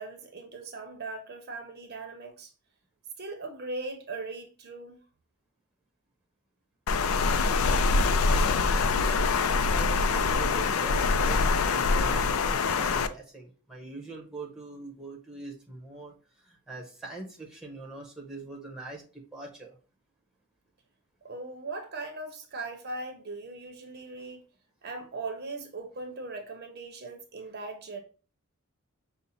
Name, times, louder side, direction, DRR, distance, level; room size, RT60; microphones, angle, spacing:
voice 1, 0.0-2.5 3.2-5.0 21.2-24.4 24.8-28.0, right 3 dB, 45° right, 0.7 m, -39 dB
Water, 6.9-13.1, left 4 dB, 65° left, 0.4 m, -24 dB
voice 2, 7.3-9.0 9.4-19.8, right 3 dB, 5° right, 0.9 m, -43 dB
5.5 x 2.1 x 4.1 m
head